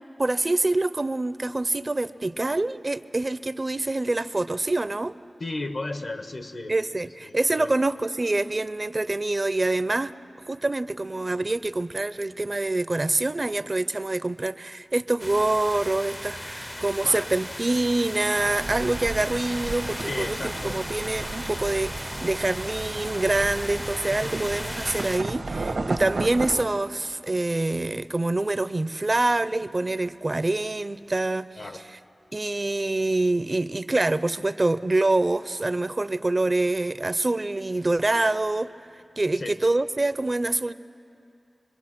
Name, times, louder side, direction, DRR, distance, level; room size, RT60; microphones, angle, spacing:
voice 1, 0.2-5.1 6.7-10.1 10.5-31.5 32.3-38.7 39.2-40.7, right 2 dB, 45° right, 15 dB, 0.5 m, -25 dB
voice 2, 5.4-6.8 7.0-7.7 17.0-17.3 20.0-20.8 24.1-24.4 31.6-31.8 38.2-38.3 39.3-39.5, left 2 dB, 75° left, 8 dB, 1.2 m, -35 dB
sound 1, 15.2-25.2, left 1 dB, 15° left, 0.5 m, -37 dB
sound 2, 18.3-26.6, right 3 dB, 90° right, 1.3 m, -34 dB
26.5 x 21.5 x 6.0 m, 2.6 s
cardioid pair, 40°, 0 cm